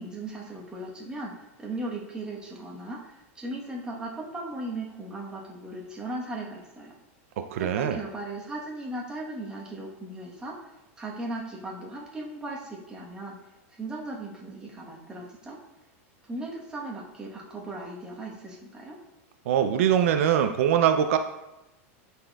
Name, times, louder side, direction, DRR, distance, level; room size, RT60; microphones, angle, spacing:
voice 1, 0.0-1.3 1.6-6.9 7.5-10.5 11.0-13.4 13.7-15.6 16.2-19.0, right 2 dB, 10° right, -3 dB, 1.1 m, -37 dB
voice 2, 7.4-8.0 19.5-21.2, right 9 dB, 75° right, 8 dB, 0.4 m, -22 dB
11.0 x 4.2 x 2.3 m, 0.93 s
supercardioid pair, 150°, 8 cm